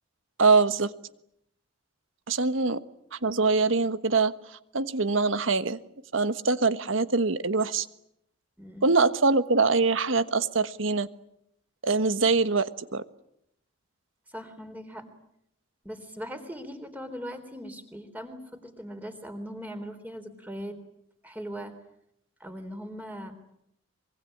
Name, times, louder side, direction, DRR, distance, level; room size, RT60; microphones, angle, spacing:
voice 1, 0.4-0.9 2.3-2.8 3.1-5.8 6.1-7.9 8.8-11.1 11.8-13.0, right 4 dB, 80° right, 13 dB, 1.4 m, -24 dB
voice 2, 8.6-9.2 14.3-15.0 15.8-20.8 21.2-21.7 22.4-23.3, equal, 10° right, 7 dB, 3.7 m, -40 dB
24.5 x 23.0 x 10.0 m, 0.76 s
head